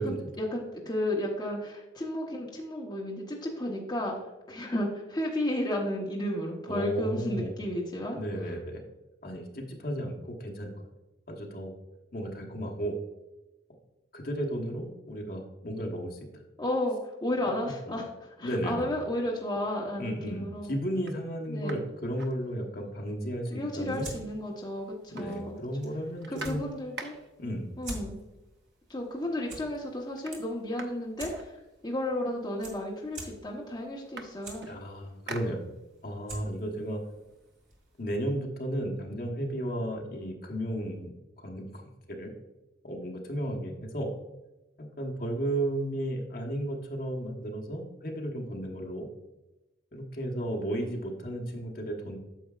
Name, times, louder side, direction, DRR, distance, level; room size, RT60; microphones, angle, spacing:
voice 1, 0.0-8.5 16.6-20.7 21.5-21.8 23.5-25.6 26.3-27.2 27.8-28.2 28.9-31.5 31.8-34.7, left 1 dB, 20° left, -2 dB, 1.0 m, -33 dB
voice 2, 6.7-7.5 8.1-8.8 9.2-10.7 11.3-11.7 12.1-13.0 14.1-16.4 17.4-17.5 17.9-18.0 18.4-18.9 20.0-24.1 25.1-26.6 27.4-27.7 34.7-35.7 36.0-37.0 38.0-41.1 41.4-41.8 42.1-42.3 42.8-44.1 44.8-49.1 49.9-52.2, right 1 dB, 50° left, 1 dB, 1.2 m, -34 dB
sound 1, 19.8-20.0 20.5-20.6 20.9-23.0 23.3-23.4 23.7-24.5 24.8-27.5 28.5-28.6 29.0-29.4 29.7-32.1 32.9-33.0 33.3-36.1 36.6-38.3, right 3 dB, 60° right, 0.7 m, -47 dB
sound 2, 23.7-38.0, right 2 dB, 45° right, 2.0 m, -49 dB
9.1 x 6.9 x 2.4 m, 1.0 s
head